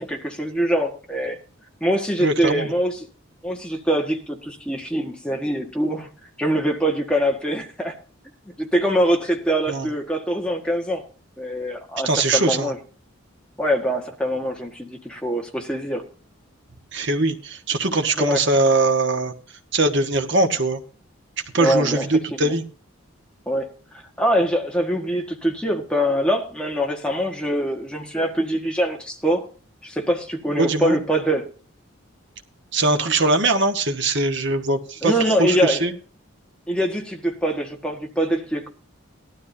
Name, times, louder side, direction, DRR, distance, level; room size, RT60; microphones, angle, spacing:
voice 1, 0.0-1.4 1.8-3.1 3.4-6.1 6.4-7.9 8.4-11.0 11.4-12.8 13.6-16.0 18.2-18.4 21.6-22.0 22.4-22.5 23.5-23.7 24.2-29.5 29.8-31.5 35.0-35.9 36.7-38.7, equal, 5° left, 1 dB, 1.6 m, -23 dB
voice 2, 2.2-2.7 9.7-9.9 12.0-12.7 16.9-19.3 19.7-20.8 21.5-22.6 30.5-31.0 32.7-35.9, right 2 dB, 55° right, 6 dB, 1.4 m, -21 dB
17.0 x 12.5 x 2.7 m, 0.38 s
head